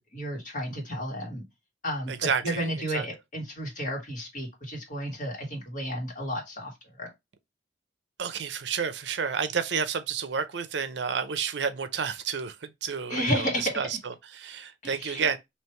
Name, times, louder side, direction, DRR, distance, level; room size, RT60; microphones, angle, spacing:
voice 1, 0.0-1.4 1.8-7.1 13.1-13.7 14.8-15.3, equal, 45° left, 1.7 m, -32 dB
voice 2, 2.1-2.6 2.9-3.0 8.2-15.4, right 6 dB, 70° right, 0.6 m, -30 dB
3.2 x 2.9 x 4.4 m
head